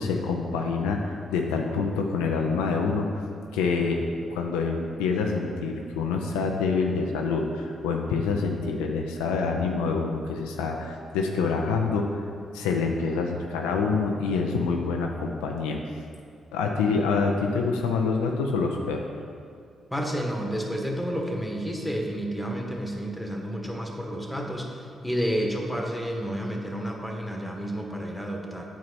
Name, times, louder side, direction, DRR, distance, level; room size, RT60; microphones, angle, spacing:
voice 1, 0.0-3.2 3.5-4.0 4.3-12.2 12.5-15.8 16.5-19.0, left 4 dB, 85° left, 2 dB, 0.5 m, -26 dB
voice 2, 19.9-28.6, equal, 5° left, 1 dB, 1.4 m, -30 dB
8.3 x 4.6 x 4.2 m, 2.3 s
hypercardioid pair, 45°, 0 cm